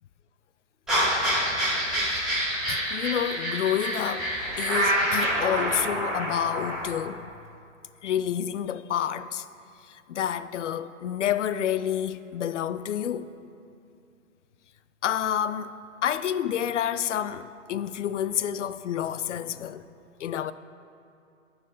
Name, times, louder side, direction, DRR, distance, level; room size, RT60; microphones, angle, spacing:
sound 1, 0.9-6.8, equal, ahead, 0.7 m, -27 dB
voice 1, 2.7-7.3 8.0-9.5 9.9-13.3 15.0-15.7 16.0-19.8 20.2-20.5, left 10 dB, 65° left, 0.5 m, -29 dB
13.5 x 4.6 x 5.0 m
hypercardioid pair, 165°, 39 cm